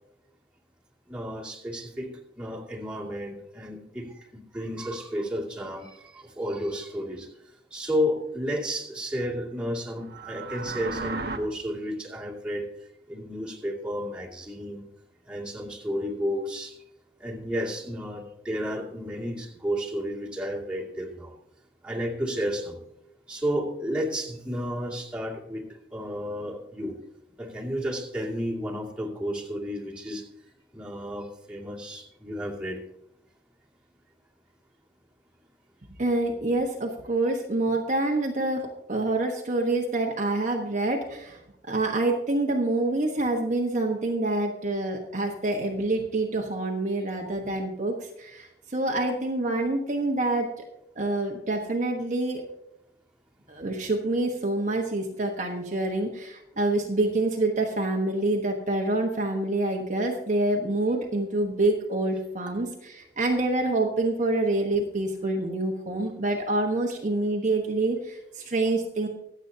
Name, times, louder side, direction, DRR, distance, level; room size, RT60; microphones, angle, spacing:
voice 1, 1.1-2.1 2.4-7.3 7.7-12.7 13.1-14.8 15.3-16.8 17.2-21.3 21.8-22.8 23.3-26.9 27.4-30.2 30.7-32.8 37.7-37.8, equal, 5° right, -4 dB, 2.4 m, -32 dB
sound 1, 10.0-11.4, right 3 dB, 65° right, 1.2 m, -34 dB
voice 2, 36.0-41.4 41.7-50.5 51.0-52.4 53.5-69.1, right 2 dB, 45° right, 0 dB, 1.3 m, -27 dB
24.0 x 8.2 x 2.8 m, 0.84 s
head